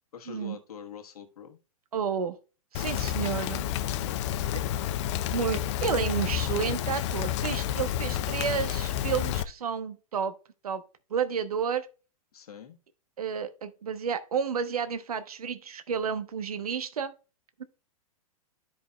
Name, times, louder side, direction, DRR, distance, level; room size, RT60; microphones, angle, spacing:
voice 1, 0.1-1.6 4.0-4.4 12.3-12.8, left 8 dB, 80° left, 1.3 m, -45 dB
voice 2, 1.9-2.4 2.7-3.6 5.3-10.3 10.6-10.8 11.1-11.9 13.2-17.1, right 7 dB, 85° right, 0.9 m, -31 dB
Rain, 2.7-9.4, left 11 dB, 50° left, 0.6 m, -30 dB
12.5 x 5.4 x 2.2 m
hypercardioid pair, 115°, 19 cm